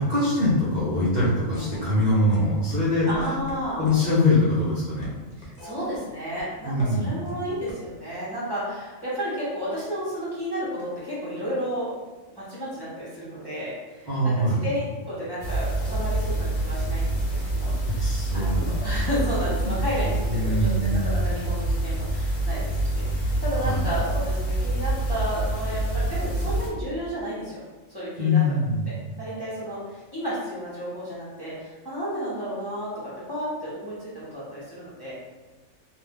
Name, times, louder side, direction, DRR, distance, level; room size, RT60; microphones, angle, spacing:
voice 1, 0.0-3.1 3.8-5.1 6.6-7.2 14.1-14.7 17.6-19.3 19.6-19.7 20.0-21.4 23.6-23.9 28.2-28.9, left 1 dB, 50° right, -8 dB, 0.5 m, -24 dB
sound 1, 0.9-2.0 2.3-2.8 3.1-6.4 6.8-7.0 7.2-7.7, equal, 50° left, 0.5 m, -43 dB
voice 2, 3.1-3.8 5.4-11.9 12.3-14.1 14.6-27.6 27.9-28.4 28.9-35.1, equal, 20° left, -10 dB, 0.7 m, -32 dB
sound 2, 15.4-26.7, right 1 dB, 70° left, 1.2 m, -26 dB
2.6 x 2.2 x 3.4 m, 1.2 s
omnidirectional pair, 1.4 m